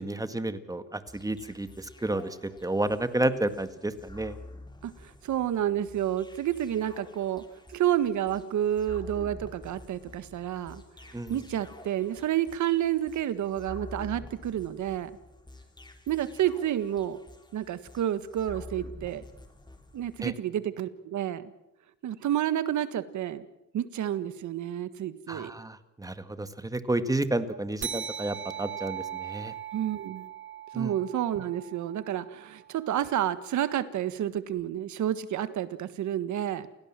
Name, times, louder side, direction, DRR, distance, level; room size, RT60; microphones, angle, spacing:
voice 1, 0.0-4.4 11.1-11.4 20.2-20.3 25.3-29.5 30.7-30.9, right 2 dB, 10° right, 10 dB, 1.8 m, -31 dB
sound 1, 1.1-20.2, left 2 dB, 15° left, 3.2 m, -48 dB
voice 2, 4.8-7.4 7.7-10.8 11.3-15.1 16.1-17.2 17.5-19.2 19.9-21.4 22.0-23.4 23.7-25.5 29.7-30.3 30.7-36.7, right 11 dB, 75° right, 13 dB, 1.6 m, -30 dB
sound 2, 27.8-32.7, right 9 dB, 40° right, 1.1 m, -39 dB
29.0 x 17.0 x 7.6 m, 0.91 s
cardioid pair, 90°, 30 cm